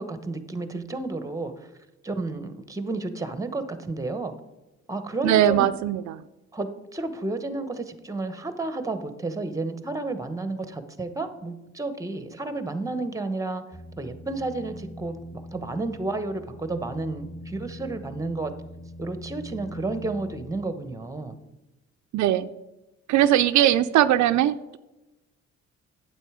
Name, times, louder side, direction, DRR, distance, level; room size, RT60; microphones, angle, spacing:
voice 1, 0.0-1.7 2.0-4.3 4.9-5.7 6.5-13.6 14.0-18.5 19.0-21.3, right 2 dB, 10° right, 10 dB, 1.0 m, -31 dB
voice 2, 5.2-6.2 22.1-22.5 23.1-24.8, right 12 dB, 70° right, 11 dB, 0.4 m, -20 dB
sound 1, 13.7-20.5, equal, 15° left, 1.4 m, -42 dB
9.0 x 7.5 x 4.9 m, 1.0 s
cardioid pair, 90°, 30 cm